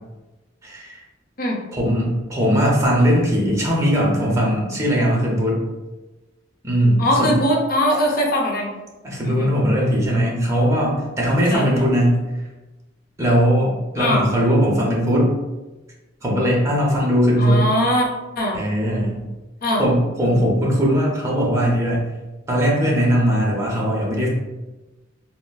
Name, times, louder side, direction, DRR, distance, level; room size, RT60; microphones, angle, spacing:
voice 1, 0.6-1.0 1.7-5.6 6.6-7.3 9.0-12.2 13.2-15.3 16.2-17.7 18.5-19.2 19.8-22.0 22.5-24.3, equal, 15° right, -4 dB, 0.6 m, -19 dB
voice 2, 7.0-8.7 9.2-9.5 11.5-11.9 14.0-14.3 17.4-18.1 18.4-18.6 19.6-19.8, equal, 50° left, 0 dB, 0.6 m, -21 dB
3.8 x 2.0 x 2.3 m, 1.1 s
head